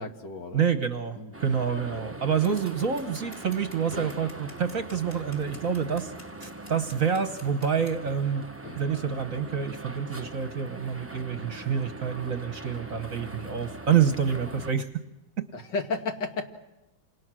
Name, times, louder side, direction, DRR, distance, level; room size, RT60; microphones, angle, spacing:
voice 1, 0.0-0.7 1.1-1.3 3.9-4.0 8.6-8.8 15.5-16.4, left 3 dB, 65° left, 4 dB, 2.7 m, -33 dB
voice 2, 0.5-6.1 6.4-8.5 8.8-14.9 15.4-15.5, right 7 dB, 50° right, 9 dB, 1.3 m, -27 dB
sound 1, 1.2-4.7, right 2 dB, 40° left, 3.6 m, -53 dB
sound 2, 1.3-14.7, right 2 dB, 15° right, 0.5 m, -42 dB
Scissors, 2.4-8.0, left 1 dB, 25° left, 3.9 m, -51 dB
28.0 x 27.0 x 6.3 m, 0.98 s
omnidirectional pair, 2.1 m